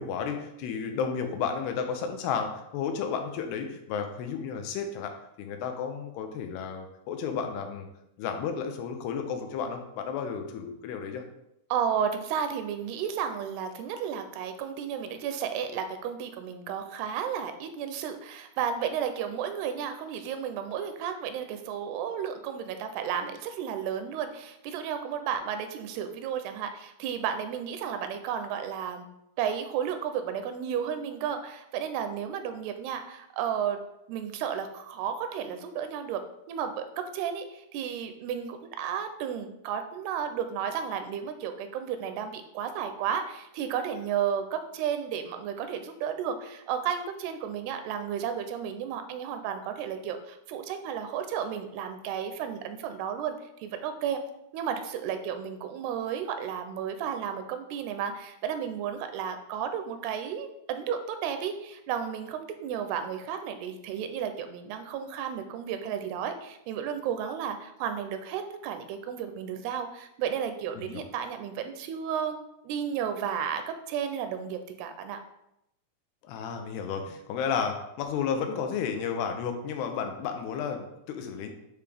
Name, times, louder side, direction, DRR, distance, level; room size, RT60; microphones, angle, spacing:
voice 1, 0.0-7.9 8.2-11.2 70.8-71.0 76.2-81.5, left 6 dB, 85° left, 5 dB, 2.7 m, -32 dB
voice 2, 11.7-29.1 29.4-33.8 34.1-36.2 36.5-54.2 54.5-72.4 72.6-75.2, right 8 dB, 90° right, 8 dB, 2.6 m, -33 dB
8.7 x 3.4 x 3.4 m, 0.83 s
omnidirectional pair, 4.5 m